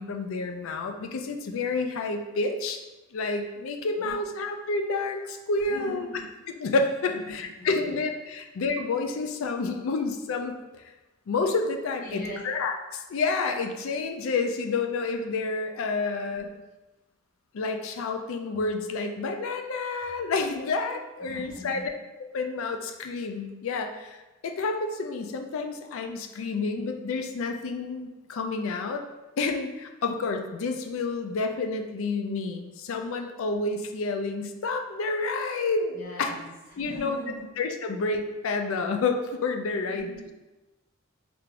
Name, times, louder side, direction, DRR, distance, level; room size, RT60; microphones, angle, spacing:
voice 1, 0.0-2.8 3.1-6.1 6.6-10.8 11.3-16.5 17.5-21.8 22.3-24.2 24.4-29.0 29.4-36.3 36.8-37.2 37.6-40.1, left 3 dB, 70° left, 5 dB, 0.4 m, -29 dB
voice 2, 5.7-6.2 7.1-8.0 12.0-12.4 16.3-16.5 21.2-21.9 33.1-33.4 35.9-37.5 37.9-38.0 39.8-40.2, left 1 dB, 40° left, -6 dB, 1.0 m, -41 dB
3.3 x 3.2 x 2.5 m, 1.1 s
head